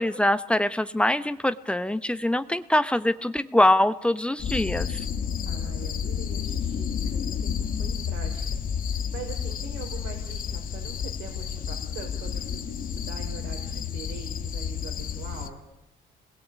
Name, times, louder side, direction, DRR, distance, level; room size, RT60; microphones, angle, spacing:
voice 1, 0.0-5.0, left 1 dB, 5° left, 13 dB, 1.0 m, -23 dB
sound 1, 4.4-15.5, left 7 dB, 55° left, 1.6 m, -31 dB
voice 2, 5.4-15.6, right 6 dB, 90° right, 2 dB, 4.5 m, -43 dB
27.0 x 21.0 x 8.6 m, 0.94 s
cardioid pair, 110°, 17 cm